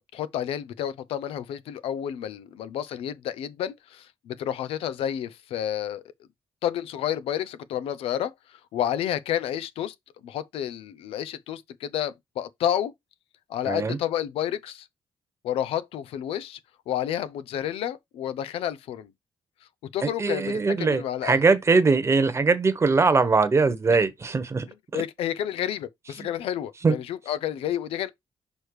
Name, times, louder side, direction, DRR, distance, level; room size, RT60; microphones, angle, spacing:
voice 1, 0.0-6.0 6.6-9.9 10.2-12.9 13.5-14.9 15.4-16.6 16.9-19.1 19.9-21.4 24.9-28.1, left 10 dB, 85° left, 0.5 m, -30 dB
voice 2, 13.6-14.0 20.0-24.7 24.9-25.0 26.2-26.3 26.8-26.9, right 4 dB, 30° right, 1.1 m, -21 dB
6.2 x 3.2 x 4.8 m
cardioid pair, 100°, 10 cm